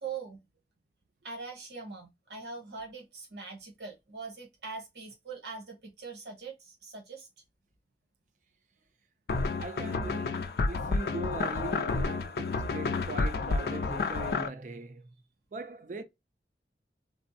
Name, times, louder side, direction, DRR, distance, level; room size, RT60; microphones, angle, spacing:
voice 1, 0.0-0.5 1.2-7.3, right 4 dB, 75° right, 1.1 m, -42 dB
sound 1, 9.3-14.5, left 3 dB, 60° left, 0.4 m, -30 dB
voice 2, 9.6-15.1 15.5-16.0, right 3 dB, 45° right, 0.4 m, -40 dB
3.4 x 2.0 x 2.6 m
head